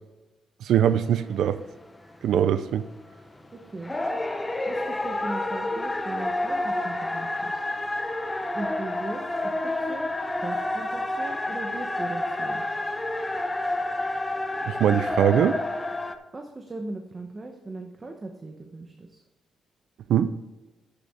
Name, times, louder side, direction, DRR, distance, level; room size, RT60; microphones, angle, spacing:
voice 1, 0.6-1.6 2.2-2.9 14.7-15.6 20.1-20.3, right 9 dB, 85° right, 13 dB, 0.5 m, -22 dB
sound 1, 0.9-3.0 3.4-3.5 3.8-16.2, left 2 dB, 15° left, 0.6 m, -29 dB
voice 2, 3.5-3.9 4.7-7.7 8.5-12.6 16.3-19.2, right 2 dB, 25° right, 3 dB, 0.9 m, -38 dB
11.5 x 6.8 x 3.6 m, 1.1 s
wide cardioid pair, 160°, 0 cm